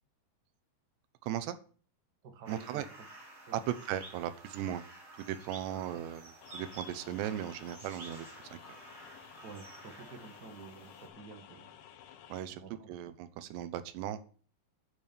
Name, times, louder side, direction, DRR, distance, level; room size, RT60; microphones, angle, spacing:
voice 1, 1.2-1.6 2.5-2.9 3.5-4.8 5.2-8.6 12.3-12.6 12.9-14.2, right 11 dB, 85° right, 12 dB, 3.1 m, -37 dB
voice 2, 2.2-2.8 3.5-3.6 5.7-5.9 9.4-11.7 12.5-12.9, right 4 dB, 50° right, 3 dB, 1.3 m, -50 dB
sound 1, 2.4-11.1, right 2 dB, 30° right, 4.1 m, -52 dB
sound 2, 6.4-12.4, left 10 dB, 70° left, 2.2 m, -54 dB
9.4 x 6.8 x 7.0 m, 0.42 s
omnidirectional pair, 4.8 m